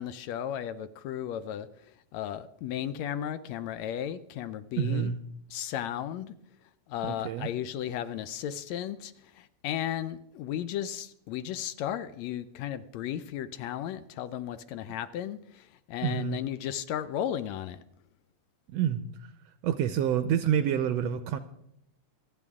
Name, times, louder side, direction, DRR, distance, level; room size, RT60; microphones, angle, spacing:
voice 1, 0.0-1.7 2.1-5.1 5.5-6.3 6.9-17.8, left 10 dB, 75° left, 13 dB, 1.7 m, -35 dB
voice 2, 4.8-5.2 7.0-7.5 16.0-16.4 18.7-19.0 19.6-21.4, right 9 dB, 75° right, 11 dB, 1.6 m, -28 dB
27.0 x 9.1 x 3.6 m, 0.78 s
omnidirectional pair, 3.4 m